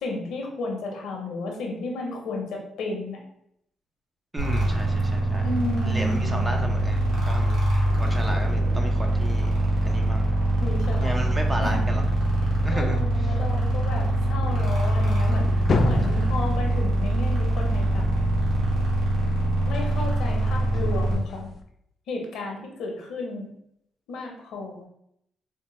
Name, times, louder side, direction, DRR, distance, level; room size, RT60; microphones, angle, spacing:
voice 1, 0.0-3.2 5.4-6.4 10.6-11.2 11.6-11.8 12.7-18.1 19.6-21.5 22.1-23.5 24.1-24.9, left 2 dB, 80° left, 1 dB, 0.9 m, -33 dB
voice 2, 4.3-5.4 5.8-7.0 7.2-7.7 8.0-10.3 11.0-12.0 12.6-13.3 16.1-16.4, right 1 dB, 20° right, 3 dB, 0.6 m, -33 dB
sound 1, 4.4-21.1, right 1 dB, 70° right, 1.3 m, -23 dB
sound 2, 15.4-18.6 19.7-21.6, left 3 dB, 45° left, 0.4 m, -31 dB
4.4 x 2.1 x 3.1 m, 0.73 s
cardioid pair, 90°, 0 cm